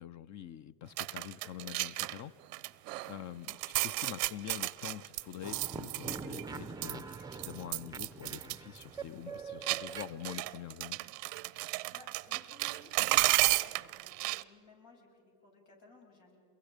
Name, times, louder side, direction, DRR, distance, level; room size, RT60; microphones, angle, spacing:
voice 1, 0.0-2.3 3.1-3.6 3.8-11.0, left 10 dB, 40° left, 14 dB, 0.6 m, -45 dB
sound 1, 1.0-2.2 2.5-3.2 3.5-6.6 6.8-8.6 8.8-8.9 9.6-14.4, right 22 dB, 85° right, 0.7 m, -33 dB
sound 2, 5.4-10.5, right 4 dB, 10° right, 0.5 m, -44 dB
voice 2, 11.9-16.4, left 2 dB, 80° left, -1 dB, 7.7 m, -59 dB
28.0 x 22.5 x 5.1 m, 2.4 s
supercardioid pair, 100°, 47 cm